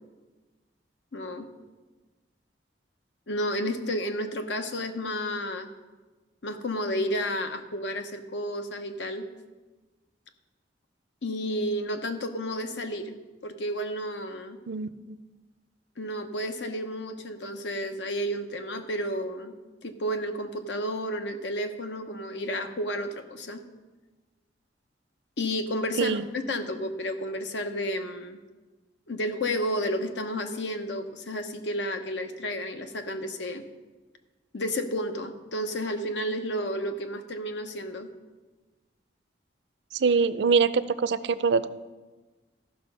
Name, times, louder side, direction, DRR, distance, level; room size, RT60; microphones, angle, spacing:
voice 1, 1.1-1.5 3.3-5.7 6.4-9.3 11.2-13.2 13.4-14.6 16.0-19.5 19.8-23.6 25.4-28.4 29.1-33.6 34.5-38.1, equal, 80° left, 7 dB, 0.9 m, -31 dB
voice 2, 39.9-41.7, right 5 dB, 75° right, 15 dB, 0.4 m, -23 dB
13.5 x 5.8 x 5.4 m, 1.3 s
head